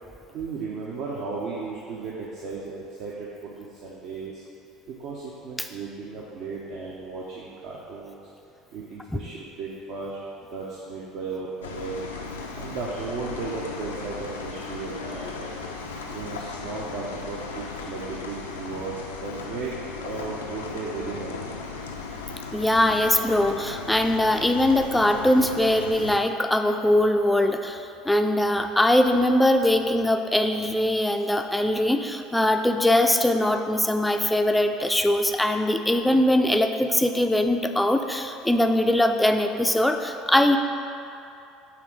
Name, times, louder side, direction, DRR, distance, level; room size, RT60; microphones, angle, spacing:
voice 1, 0.3-4.4 4.9-8.2 8.7-10.2 10.5-12.0 12.6-15.5 16.1-18.9 19.2-21.5, right 4 dB, 55° right, -4 dB, 0.6 m, -35 dB
sound 1, 11.6-26.2, left 4 dB, 75° left, 0.4 m, -36 dB
voice 2, 22.5-40.6, left 1 dB, 5° left, 5 dB, 0.4 m, -21 dB
5.9 x 3.7 x 4.7 m, 2.7 s
figure-of-eight pair, 65°, 0 cm